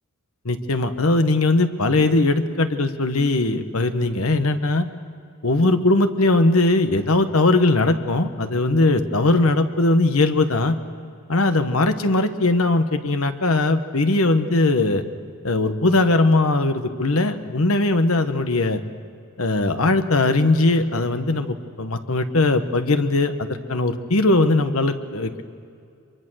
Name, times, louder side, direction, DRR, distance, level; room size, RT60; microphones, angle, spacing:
voice 1, 0.4-4.9 5.4-10.8 11.3-15.0 15.4-18.8 19.4-25.4, left 2 dB, 70° left, 9 dB, 1.3 m, -20 dB
25.0 x 23.5 x 6.4 m, 2.4 s
head